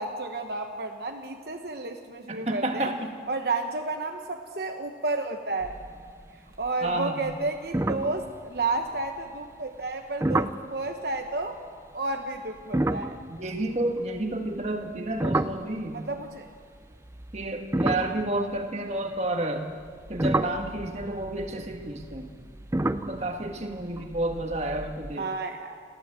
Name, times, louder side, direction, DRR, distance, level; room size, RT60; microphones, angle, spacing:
voice 1, 0.0-2.9 3.3-5.7 6.6-11.6 11.9-13.2 15.9-16.5 25.2-25.8, right 3 dB, 60° right, 4 dB, 1.1 m, -31 dB
voice 2, 2.3-3.1 6.8-7.3 13.3-16.0 17.3-19.7 20.1-22.3 23.1-25.3, right 1 dB, 35° right, 4 dB, 1.7 m, -30 dB
sound 1, 5.6-6.3 6.5-6.9 7.3-7.4 7.7-9.0 10.2-10.7 12.6-16.2 17.0-19.2 19.8-25.1, right 1 dB, 15° right, 0.5 m, -31 dB
29.5 x 12.5 x 7.6 m, 2.1 s
head